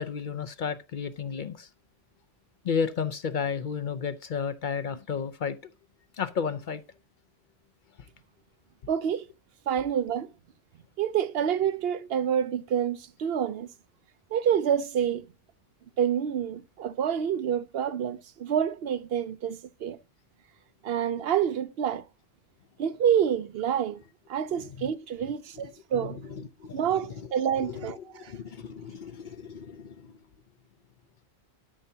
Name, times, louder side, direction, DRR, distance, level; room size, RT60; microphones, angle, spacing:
voice 1, 0.0-1.7 2.6-5.7 6.2-6.8 24.8-24.9 25.9-26.8 27.6-27.9 28.2-30.1, left 6 dB, 55° left, 0.7 m, -33 dB
voice 2, 8.9-9.3 9.7-10.3 11.0-13.7 14.3-15.3 16.0-20.0 20.8-22.0 22.8-24.0 24.3-26.2 26.7-28.3, right 9 dB, 70° right, 0.8 m, -28 dB
12.5 x 5.6 x 2.7 m
omnidirectional pair, 1.1 m